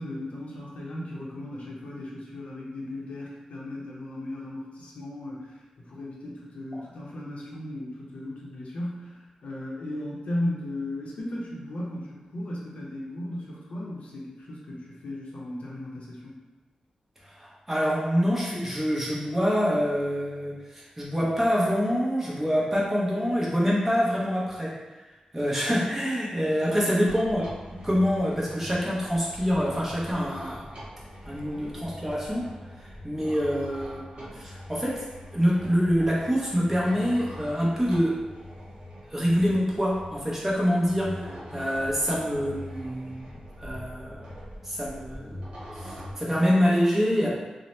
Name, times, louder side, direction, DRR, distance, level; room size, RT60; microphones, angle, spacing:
voice 1, 0.0-16.4 26.6-27.1, left 1 dB, 75° left, -4 dB, 0.6 m, -36 dB
voice 2, 17.3-24.7 25.3-27.5 27.8-30.7 31.3-32.4 32.8-35.0 35.3-38.2 39.1-43.3 43.6-44.3 44.6-45.4 45.8-47.3, equal, 15° right, -6 dB, 0.7 m, -26 dB
sound 1, 27.0-46.1, equal, 65° right, 0.9 m, -42 dB
2.7 x 2.0 x 3.1 m, 1.1 s
wide cardioid pair, 105°, 2 cm